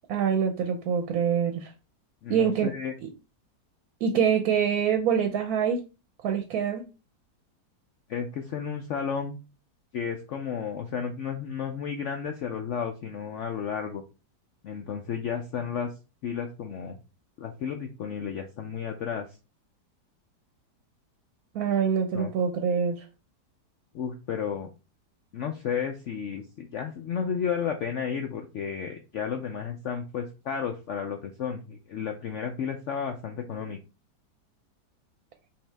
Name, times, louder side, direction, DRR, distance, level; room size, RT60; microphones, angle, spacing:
voice 1, 0.1-1.7 2.3-2.7 3.0-3.1 4.0-5.8 6.2-6.8 21.5-23.1, right 7 dB, 70° right, 6 dB, 1.1 m, -25 dB
voice 2, 2.2-2.9 8.1-9.4 9.9-14.0 14.6-15.9 16.2-17.0 17.4-19.3 22.1-22.3 23.9-24.7 25.3-33.8, left 7 dB, 70° left, 4 dB, 0.7 m, -32 dB
5.7 x 2.7 x 3.3 m, 0.31 s
omnidirectional pair, 1.8 m